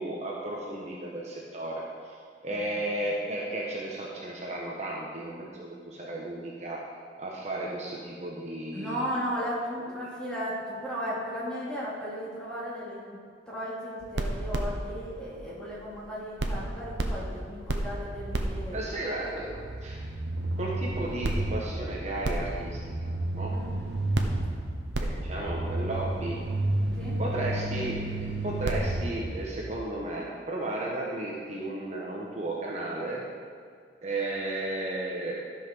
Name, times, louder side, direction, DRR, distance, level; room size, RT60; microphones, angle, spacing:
voice 1, 0.0-1.8 2.4-6.8 7.2-9.0 18.7-20.1 20.5-23.1 23.3-23.5 25.0-26.4 27.2-28.0 28.4-33.2 34.0-35.5, right 2 dB, 40° right, -3 dB, 1.3 m, -34 dB
voice 2, 8.7-13.2 13.5-18.8 23.5-23.7 27.0-27.2, equal, 5° left, -7 dB, 2.9 m, -35 dB
sound 1, 14.0-16.1 16.4-29.9, right 1 dB, 75° right, 1.1 m, -32 dB
13.0 x 5.8 x 6.1 m, 2.2 s
head